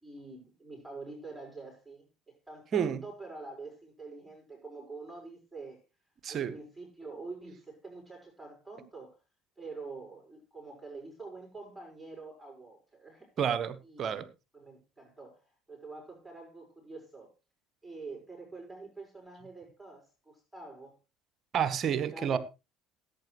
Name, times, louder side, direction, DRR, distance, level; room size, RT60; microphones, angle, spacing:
voice 1, 0.0-5.8 6.3-9.2 9.6-13.3 13.8-14.3 14.5-17.3 17.8-21.0 22.0-22.4, right 3 dB, ahead, 5.5 m, -46 dB
voice 2, 6.2-6.5 13.4-14.3 21.5-22.4, right 8 dB, 40° right, 1.1 m, -30 dB
17.0 x 8.7 x 3.1 m
figure-of-eight pair, 60°, 0 cm